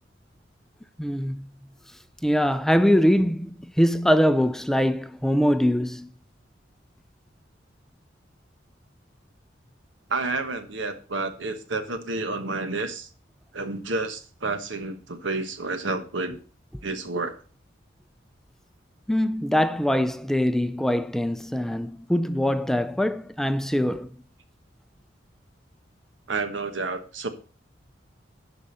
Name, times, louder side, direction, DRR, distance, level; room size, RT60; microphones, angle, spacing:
voice 1, 1.0-1.5 2.2-6.1 19.1-24.1, equal, ahead, 0.4 m, -23 dB
voice 2, 10.1-13.1 13.5-16.4 16.8-17.4 26.3-27.3, right 3 dB, 85° right, 1.2 m, -30 dB
12.0 x 5.0 x 5.5 m
head